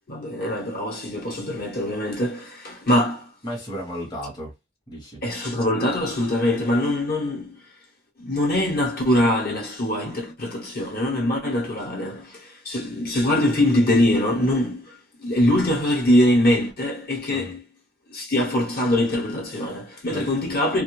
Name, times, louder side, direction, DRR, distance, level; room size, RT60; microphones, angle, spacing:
voice 1, 0.1-3.3 5.2-7.6 8.2-17.6 18.1-20.8, left 1 dB, 50° left, 1.0 m, -23 dB
voice 2, 3.4-4.5 4.9-5.2 17.3-17.6 20.1-20.5, equal, 20° left, 0.9 m, -34 dB
2.5 x 2.2 x 3.0 m
head